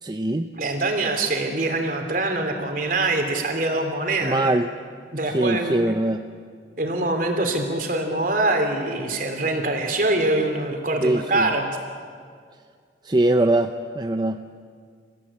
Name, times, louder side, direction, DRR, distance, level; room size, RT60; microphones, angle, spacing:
voice 1, 0.0-0.5 4.2-4.7 5.3-6.2 11.0-11.5 13.0-14.4, right 1 dB, 25° right, 7 dB, 0.6 m, -22 dB
voice 2, 0.6-4.5 5.1-5.8 6.8-11.7, right 2 dB, 50° right, 4 dB, 3.2 m, -24 dB
28.5 x 15.5 x 8.7 m, 2.1 s
head